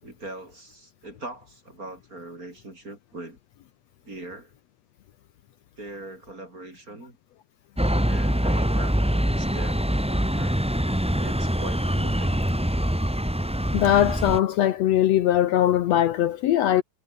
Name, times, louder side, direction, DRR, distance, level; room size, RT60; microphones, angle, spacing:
voice 1, 0.0-3.4 4.0-4.5 5.8-7.2 8.1-10.6 11.2-12.4, right 2 dB, 25° right, 6.0 m, -41 dB
sound 1, 7.8-14.4, equal, 5° right, 1.5 m, -24 dB
voice 2, 13.7-16.8, left 11 dB, 70° left, 2.0 m, -20 dB
omnidirectional pair, 3.4 m